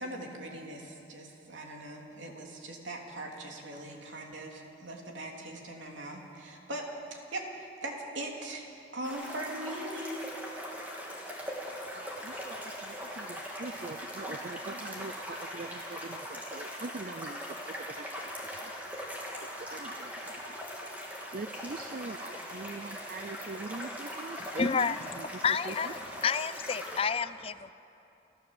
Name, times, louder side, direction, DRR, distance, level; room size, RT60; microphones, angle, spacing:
voice 1, 0.0-10.3, right 1 dB, 85° right, 0 dB, 3.1 m, -40 dB
sound 1, 9.0-27.0, equal, 10° right, 3.0 m, -41 dB
voice 2, 11.9-19.2 19.6-25.9, right 3 dB, 45° right, 11 dB, 0.5 m, -44 dB
voice 3, 24.4-27.7, left 6 dB, 30° left, 14 dB, 0.4 m, -31 dB
29.5 x 13.5 x 7.8 m, 2.8 s
head